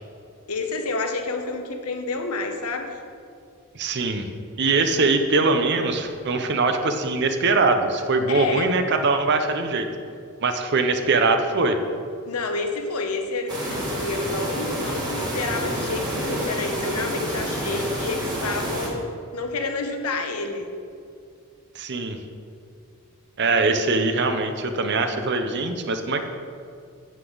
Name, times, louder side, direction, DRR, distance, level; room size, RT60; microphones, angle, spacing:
voice 1, 0.5-3.0 8.3-8.7 12.3-20.7, left 3 dB, 90° left, 5 dB, 1.0 m, -29 dB
voice 2, 3.7-4.3 4.6-9.9 10.4-11.8 21.7-22.2 23.4-26.2, right 3 dB, 50° right, 7 dB, 0.7 m, -22 dB
sound 1, 13.5-18.9, right 1 dB, 20° right, 2.0 m, -28 dB
9.4 x 8.0 x 3.9 m, 2.4 s
head